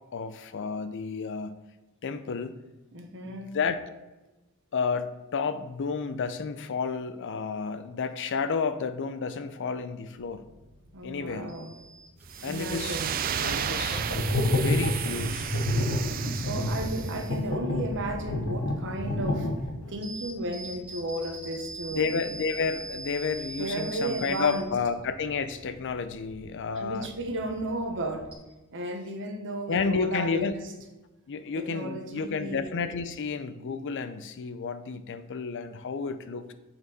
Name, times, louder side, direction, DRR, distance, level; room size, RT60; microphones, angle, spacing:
voice 1, 0.1-1.6 2.0-2.5 3.2-3.8 4.7-10.4 11.0-11.6 12.4-13.0 13.4-14.0 14.5-15.5 21.9-27.1 29.7-30.5 31.3-36.5, left 5 dB, 55° left, 11 dB, 0.5 m, -31 dB
voice 2, 2.9-3.6 10.9-11.7 12.4-13.1 15.4-15.6 16.3-19.5 19.9-22.1 23.6-24.7 26.7-28.3 28.7-30.7 31.5-32.7, right 1 dB, 55° right, 4 dB, 1.0 m, -34 dB
sound 1, 10.2-28.4, right 2 dB, 10° right, 2.1 m, -45 dB
sound 2, 12.3-17.2, right 8 dB, 40° right, 0.4 m, -33 dB
sound 3, 13.8-19.9, left 1 dB, 90° left, 1.3 m, -28 dB
7.9 x 4.4 x 4.0 m, 1.1 s
head